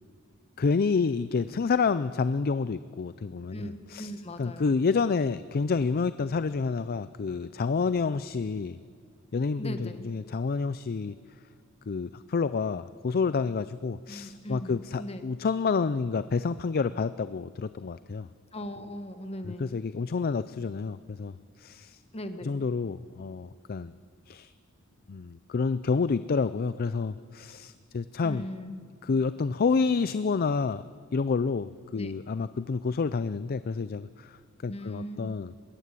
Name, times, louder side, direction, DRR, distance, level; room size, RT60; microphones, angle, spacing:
voice 1, 0.6-4.1 4.4-8.8 9.3-11.1 11.9-18.3 19.4-22.0 22.4-23.9 24.3-24.5 25.1-28.5 29.0-30.8 31.1-35.5, left 4 dB, 45° left, 14 dB, 0.4 m, -29 dB
voice 2, 4.0-4.7 9.6-10.1 14.1-15.2 18.5-19.7 22.1-22.6 28.2-28.8 31.9-32.1 34.7-35.3, equal, 30° left, 8 dB, 1.5 m, -39 dB
21.5 x 17.0 x 8.4 m, 2.1 s
head